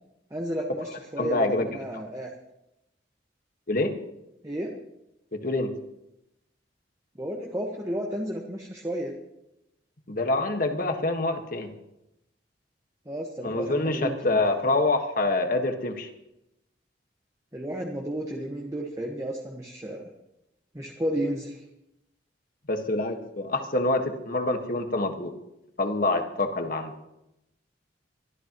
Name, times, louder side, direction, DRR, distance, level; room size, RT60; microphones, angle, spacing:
voice 1, 0.3-2.3 4.4-4.8 7.1-9.2 13.0-14.5 17.5-20.1 20.7-21.6, equal, 20° right, 0 dB, 1.4 m, -32 dB
voice 2, 1.2-1.7 1.9-2.0 3.7-4.0 5.3-5.7 10.1-11.7 13.4-16.1 22.7-25.3 25.8-26.9, left 2 dB, 50° left, 5 dB, 1.6 m, -26 dB
24.5 x 13.5 x 3.1 m, 0.86 s
head